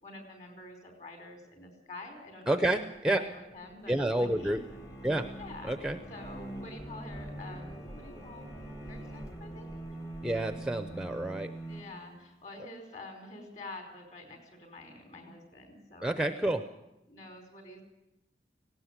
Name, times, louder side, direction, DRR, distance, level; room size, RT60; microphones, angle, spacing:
voice 1, 0.0-4.6 5.4-8.5 8.9-9.7 10.9-11.0 11.7-16.6 17.1-17.8, left 2 dB, 40° left, 4 dB, 4.7 m, -48 dB
voice 2, 2.5-3.2 3.9-4.6 5.0-5.3 5.6-6.0 10.2-11.5 16.0-16.6, right 1 dB, 5° right, 8 dB, 0.6 m, -29 dB
sound 1, 2.8-11.8, equal, 65° left, 2.8 m, -50 dB
sound 2, 4.2-12.5, right 1 dB, 20° left, 1.2 m, -45 dB
18.5 x 17.5 x 8.1 m, 0.94 s
head